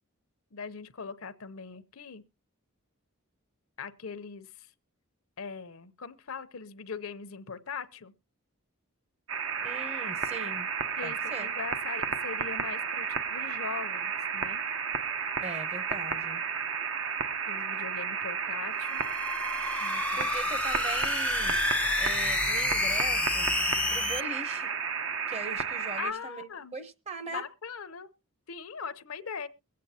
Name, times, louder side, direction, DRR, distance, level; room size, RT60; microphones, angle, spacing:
voice 1, 0.5-2.2 3.8-4.7 5.4-8.1 11.0-14.6 17.5-19.0 19.8-20.5 26.0-26.7 27.3-28.1 28.5-29.5, left 5 dB, 70° left, 0.7 m, -40 dB
sound 1, 9.3-26.1, right 6 dB, 65° right, 0.8 m, -32 dB
voice 2, 9.6-10.7 11.0-11.5 15.4-16.4 20.1-21.6 22.0-23.5 23.9-24.7 25.3-27.4, right 3 dB, 30° right, 0.8 m, -40 dB
sound 2, 18.8-24.2, left 3 dB, 5° left, 0.5 m, -30 dB
22.5 x 8.5 x 2.8 m
head